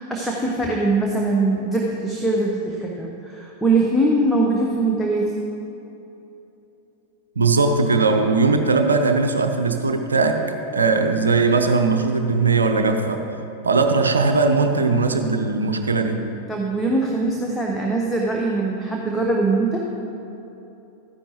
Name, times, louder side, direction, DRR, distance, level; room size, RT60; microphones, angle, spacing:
voice 1, 0.0-5.4 16.5-19.8, right 2 dB, 5° left, -2 dB, 0.9 m, -22 dB
voice 2, 7.4-10.4 10.7-13.2 13.6-16.3, right 4 dB, 75° right, 6 dB, 0.7 m, -19 dB
12.5 x 9.9 x 3.0 m, 2.9 s
figure-of-eight pair, 90°, 0 cm